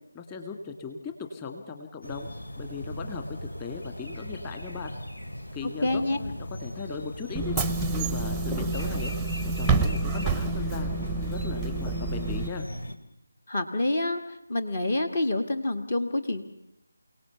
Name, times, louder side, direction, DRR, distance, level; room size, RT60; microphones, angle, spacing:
voice 1, 0.1-2.3 2.6-5.0 5.5-7.5 7.9-9.1 9.4-12.7, left 5 dB, 15° left, 5 dB, 1.9 m, -38 dB
sound 1, 2.0-12.9, equal, 65° left, 2.6 m, -39 dB
voice 2, 5.8-6.2 13.5-16.4, left 2 dB, 40° left, 9 dB, 1.6 m, -27 dB
Bus / Engine, 7.3-12.5, right 3 dB, ahead, 0.8 m, -28 dB
28.5 x 18.0 x 7.0 m, 0.80 s
figure-of-eight pair, 160°, 0 cm